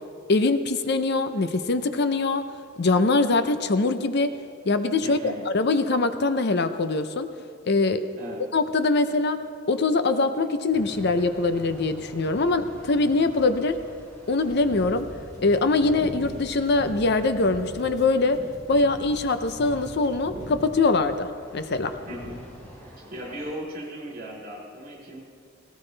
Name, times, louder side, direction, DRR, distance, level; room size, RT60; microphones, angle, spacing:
voice 1, 0.3-2.5 2.8-4.4 4.7-7.3 7.7-8.1 8.5-9.4 9.7-13.8 14.3-15.1 15.4-18.4 18.7-22.0, left 3 dB, 55° left, 10 dB, 0.6 m, -23 dB
voice 2, 5.0-5.5 8.1-8.4 22.0-22.4 22.8-25.2, equal, 45° right, -2 dB, 4.3 m, -37 dB
sound 1, 10.7-23.5, equal, 10° left, 3.9 m, -43 dB
sound 2, 14.3-20.6, equal, 35° left, 2.2 m, -52 dB
18.0 x 17.5 x 3.3 m, 2.3 s
head